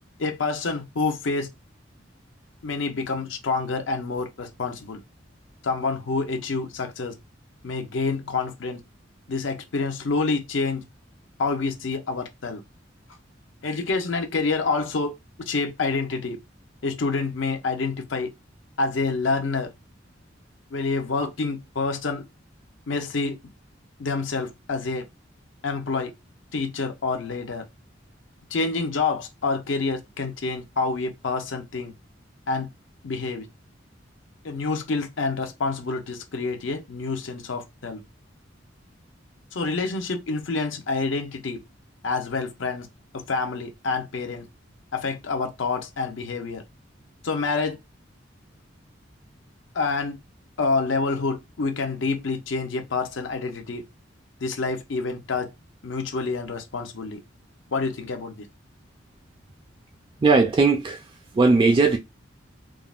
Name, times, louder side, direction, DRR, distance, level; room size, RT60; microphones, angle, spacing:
voice 1, 0.2-1.5 2.6-5.0 5.6-7.1 7.6-8.8 9.3-10.9 11.4-12.6 13.6-15.1 15.5-16.4 16.8-18.3 18.8-19.7 20.7-22.2 22.9-23.4 24.0-25.0 25.6-26.1 26.5-27.6 28.5-31.9 32.5-32.7 33.0-33.5 34.4-38.0 39.5-41.6 42.0-42.9 43.1-44.5 44.9-46.6 47.2-47.8 49.7-50.2 50.6-53.8 54.4-55.5 55.8-57.2 57.7-58.5, left 4 dB, 75° left, 0.6 m, -27 dB
voice 2, 60.2-61.1 61.3-62.0, right 3 dB, 25° right, 0.3 m, -18 dB
3.6 x 2.1 x 2.3 m
head